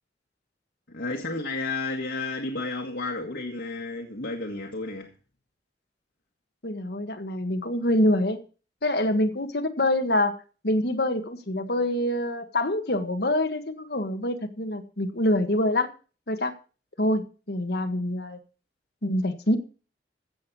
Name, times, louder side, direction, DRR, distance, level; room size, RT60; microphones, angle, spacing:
voice 1, 0.9-5.1, left 3 dB, 90° left, 1.8 m, -32 dB
voice 2, 6.6-8.4 8.8-10.3 10.6-15.9 16.3-16.5 17.0-18.4 19.0-19.6, left 1 dB, 65° left, 1.7 m, -25 dB
15.5 x 7.3 x 6.2 m
head